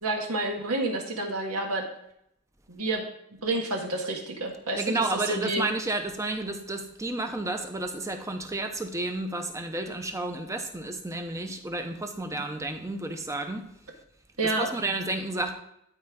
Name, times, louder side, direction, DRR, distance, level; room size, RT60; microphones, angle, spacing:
voice 1, 0.0-1.8 2.7-3.0 3.4-5.6 14.4-14.7, right 2 dB, 85° right, 1 dB, 1.6 m, -29 dB
voice 2, 4.7-13.7 14.4-15.5, right 2 dB, 15° right, 6 dB, 0.7 m, -31 dB
12.5 x 4.4 x 3.7 m, 0.76 s
head